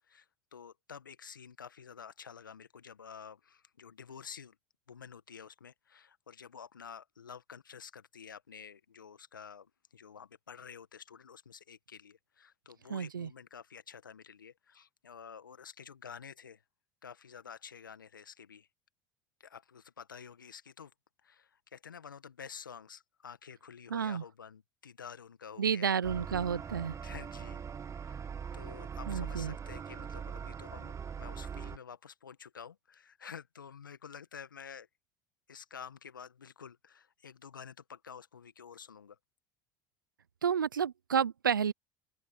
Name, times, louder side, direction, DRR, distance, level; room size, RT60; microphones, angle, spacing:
voice 1, 0.5-4.5 4.9-16.6 17.0-18.7 19.4-20.9 21.2-26.0 26.6-26.7 27.0-27.6 28.0-28.3 28.5-34.9 35.5-39.2, left 7 dB, 85° left, 1.6 m, -50 dB
voice 2, 12.9-13.3 23.9-24.2 25.6-27.0 29.1-29.6 40.4-41.7, right 7 dB, 85° right, 0.7 m, -31 dB
sound 1, 26.0-31.8, right 7 dB, 30° right, 1.5 m, -41 dB
open air
figure-of-eight pair, 70°, 10 cm